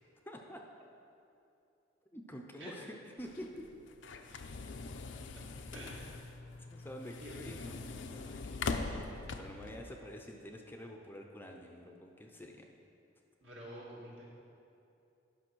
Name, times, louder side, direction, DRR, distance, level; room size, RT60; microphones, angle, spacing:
voice 1, 0.2-0.6 2.1-3.7 6.7-7.8 8.1-9.1 9.4-12.7, equal, 10° left, 2 dB, 0.6 m, -48 dB
sound 1, 3.2-9.8, left 3 dB, 70° left, 0.5 m, -42 dB
voice 2, 5.7-6.2 7.2-7.4 13.4-14.2, right 1 dB, 65° right, -5 dB, 2.2 m, -48 dB
10.5 x 5.3 x 6.1 m, 2.7 s
head